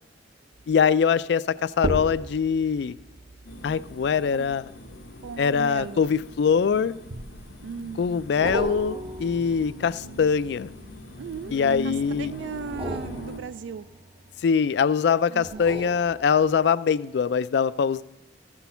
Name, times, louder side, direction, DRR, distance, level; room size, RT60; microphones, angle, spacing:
sound 1, 0.5-0.9 1.7-6.4 7.1-7.7 8.4-11.4 12.6-14.7 15.4-16.8 17.3-17.4, right 1 dB, 30° right, 0.6 m, -37 dB
voice 1, 0.7-3.0 3.6-4.7 5.4-6.9 8.0-10.7 11.5-12.3 14.4-18.0, left 6 dB, 65° left, 17 dB, 0.3 m, -23 dB
sound 2, 3.4-13.4, left 1 dB, 80° left, 0.9 m, -41 dB
voice 2, 5.2-6.0 7.6-8.0 11.2-13.9 15.3-15.7, right 6 dB, 80° right, 15 dB, 0.3 m, -37 dB
13.0 x 6.2 x 5.6 m, 0.93 s
head